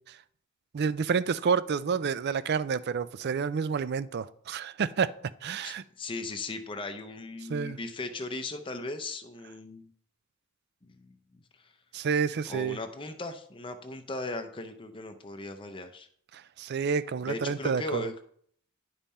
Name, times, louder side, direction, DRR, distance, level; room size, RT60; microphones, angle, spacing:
voice 1, 0.7-5.1 5.4-5.8 7.5-7.8 11.9-12.8 16.3-18.0, right 6 dB, 50° right, 16 dB, 0.4 m, -29 dB
voice 2, 5.6-9.9 10.8-11.1 11.6-11.7 12.5-16.1 17.3-18.1, left 2 dB, 25° left, 7 dB, 0.6 m, -37 dB
10.5 x 5.4 x 4.2 m, 0.63 s
head